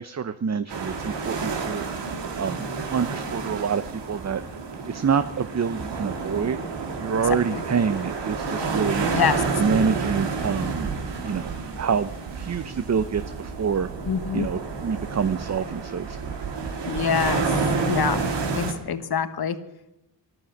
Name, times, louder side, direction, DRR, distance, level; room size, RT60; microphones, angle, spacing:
voice 1, 0.0-1.9 2.4-4.4 4.8-6.6 7.0-9.1 9.6-10.9 11.2-11.5 11.8-13.9 14.3-16.3, right 6 dB, 40° right, 12 dB, 0.7 m, -26 dB
sound 1, 0.7-18.7, right 4 dB, 80° right, 2.1 m, -29 dB
voice 2, 9.1-9.6 14.1-14.5 16.9-17.5 17.9-18.3 18.5-19.6, left 7 dB, 60° left, 11 dB, 1.3 m, -25 dB
12.5 x 11.5 x 9.1 m, 0.92 s
cardioid pair, 60°, 42 cm